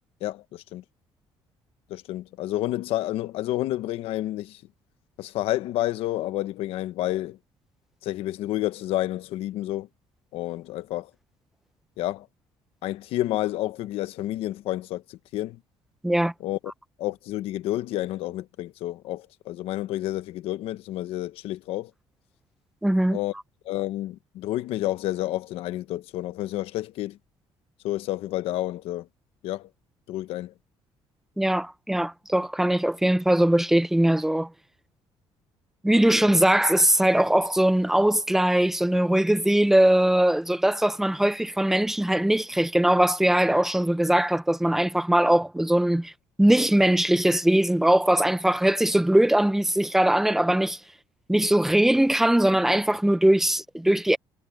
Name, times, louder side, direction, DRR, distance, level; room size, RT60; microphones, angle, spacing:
voice 1, 0.2-0.8 1.9-4.6 5.2-7.4 8.0-9.9 10.3-11.1 12.0-12.3 12.8-15.6 16.4-16.6 17.0-21.9 23.1-23.3 23.6-27.2 27.8-29.1 29.4-29.7 30.1-30.5, left 15 dB, 85° left, 1.0 m, -30 dB
voice 2, 22.8-23.2 31.4-34.5 35.8-46.1 46.4-50.8 51.3-54.2, right 1 dB, 5° right, 0.7 m, -21 dB
cardioid pair, 135°, 10 cm